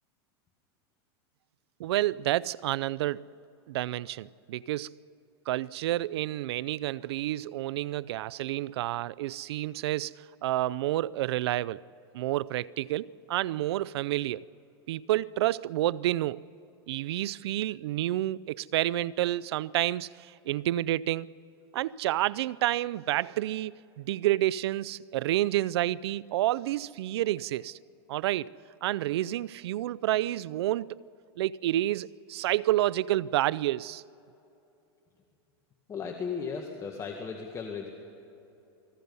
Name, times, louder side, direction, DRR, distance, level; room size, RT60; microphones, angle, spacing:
voice 1, 1.8-3.3 3.7-5.0 5.5-10.1 10.4-11.8 12.1-14.4 14.9-16.4 16.9-21.3 21.7-27.8 28.1-28.5 28.8-31.0 31.4-34.0, right 14 dB, 80° right, 0.5 m, -29 dB
voice 2, 35.9-37.9, left 6 dB, 25° left, 1.9 m, -36 dB
29.0 x 21.0 x 5.5 m
supercardioid pair, 135°, 13 cm